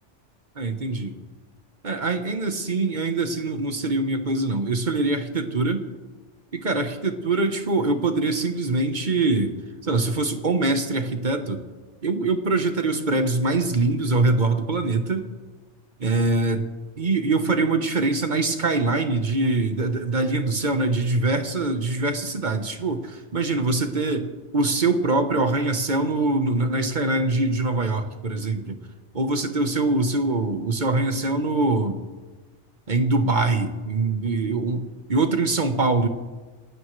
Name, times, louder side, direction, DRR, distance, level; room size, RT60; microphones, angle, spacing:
voice 1, 0.6-1.2 1.8-5.9 6.5-9.6 9.8-11.6 12.0-15.3 16.0-16.7 17.0-28.8 29.1-32.0 32.9-36.1, right 3 dB, 45° right, 7 dB, 1.2 m, -23 dB
27.5 x 12.5 x 3.3 m, 1.3 s
omnidirectional pair, 1.2 m